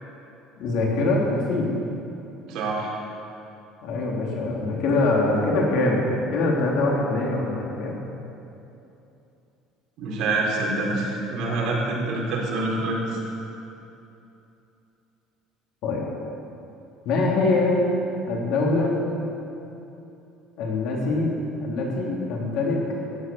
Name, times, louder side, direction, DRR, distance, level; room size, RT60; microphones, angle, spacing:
voice 1, 0.6-1.7 3.8-8.0 15.8-16.1 17.0-17.9 18.3-19.0 20.6-21.3 21.6-22.8, left 2 dB, 60° left, -2 dB, 3.3 m, -23 dB
voice 2, 2.5-2.9 10.0-13.0, right 2 dB, 55° right, -3 dB, 3.9 m, -26 dB
14.5 x 9.1 x 7.1 m, 2.9 s
cardioid pair, 150°, 0 cm